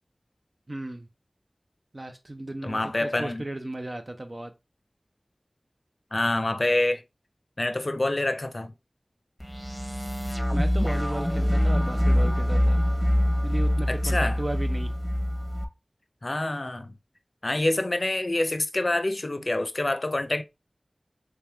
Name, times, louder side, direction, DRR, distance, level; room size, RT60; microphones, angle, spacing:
voice 1, 0.7-1.1 1.9-4.5 10.5-12.8 13.4-14.9, right 1 dB, 45° right, 0.5 m, -35 dB
voice 2, 2.6-3.4 6.1-7.0 7.6-8.7 13.9-14.4 16.2-16.9 17.4-20.4, left 2 dB, 50° left, 0.5 m, -26 dB
sound 1, 9.4-15.6, equal, ahead, 1.0 m, -24 dB
3.3 x 3.2 x 3.3 m
wide cardioid pair, 50°, 0 cm